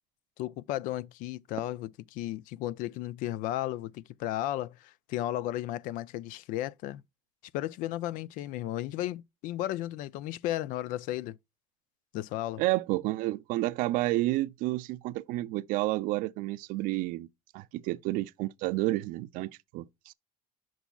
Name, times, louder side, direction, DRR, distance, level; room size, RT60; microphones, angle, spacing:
voice 1, 0.4-7.0 7.5-11.4 12.1-12.6, left 14 dB, 75° left, 0.4 m, -34 dB
voice 2, 12.6-17.3 17.5-20.1, right 18 dB, 75° right, 0.4 m, -30 dB
8.0 x 6.1 x 2.3 m
cardioid pair, 150°, 14 cm